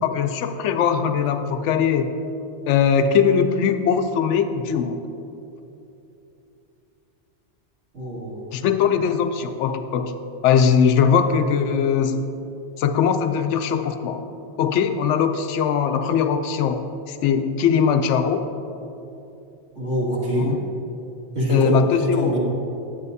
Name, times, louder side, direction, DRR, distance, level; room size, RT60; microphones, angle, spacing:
voice 1, 0.0-2.2 2.7-5.0 8.5-10.1 10.4-12.3 12.8-14.2 14.6-18.4 20.3-20.6 21.5-22.4, left 7 dB, 80° left, 8 dB, 0.9 m, -20 dB
voice 2, 7.9-8.4 19.8-20.5 21.3-22.4, equal, 85° right, -7 dB, 2.5 m, -24 dB
11.0 x 8.6 x 2.7 m, 2.9 s
omnidirectional pair, 1.2 m